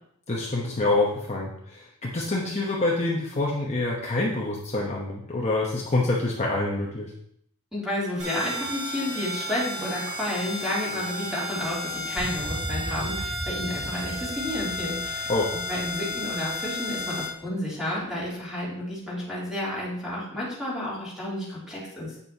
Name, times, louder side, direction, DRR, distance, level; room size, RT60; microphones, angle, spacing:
voice 1, 0.3-7.1 15.3-15.5, left 2 dB, 30° left, -3 dB, 0.9 m, -26 dB
voice 2, 7.7-15.3 15.7-22.2, left 1 dB, 5° right, -8 dB, 3.0 m, -31 dB
sound 1, 8.2-17.3, left 1 dB, 50° right, 1.8 m, -33 dB
sound 2, 12.2-17.5, equal, 70° left, 1.3 m, -38 dB
8.4 x 6.8 x 2.8 m, 0.69 s
head